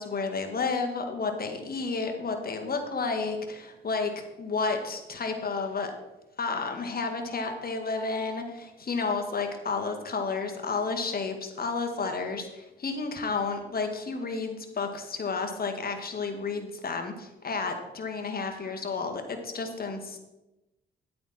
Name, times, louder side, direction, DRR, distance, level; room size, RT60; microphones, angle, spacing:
voice 1, 0.0-5.9 6.4-20.2, left 4 dB, 50° left, 5 dB, 1.9 m, -31 dB
10.5 x 8.6 x 4.3 m, 0.98 s
cardioid pair, 65°, 20 cm